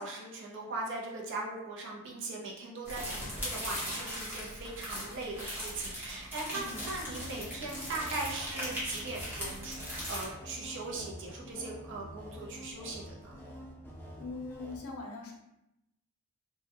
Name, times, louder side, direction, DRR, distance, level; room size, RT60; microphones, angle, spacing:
voice 1, 0.0-13.4, right 2 dB, 55° right, -2 dB, 0.5 m, -40 dB
sound 1, 2.8-10.3, equal, 10° right, 0.7 m, -39 dB
voice 2, 6.5-6.8 14.2-15.3, left 3 dB, 70° left, 0 dB, 0.6 m, -42 dB
sound 2, 6.5-14.8, equal, 10° left, 0.3 m, -47 dB
2.2 x 2.1 x 2.8 m, 0.87 s
head